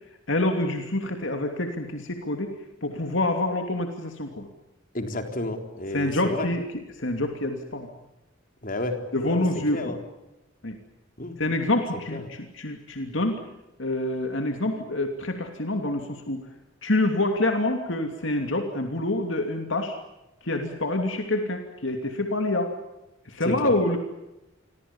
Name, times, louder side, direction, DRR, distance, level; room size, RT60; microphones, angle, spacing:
voice 1, 0.3-2.5 2.8-4.5 5.9-6.6 7.0-7.9 9.1-9.9 10.6-10.7 11.4-13.4 13.8-16.4 16.8-20.0 20.4-22.7 23.3-24.0, left 2 dB, 65° left, 4 dB, 2.9 m, -26 dB
voice 2, 4.9-6.5 8.6-9.5 9.7-10.0 11.2-11.4 12.1-12.3 23.4-23.7, left 1 dB, 40° left, 5 dB, 3.9 m, -31 dB
29.5 x 24.0 x 7.3 m, 0.96 s
head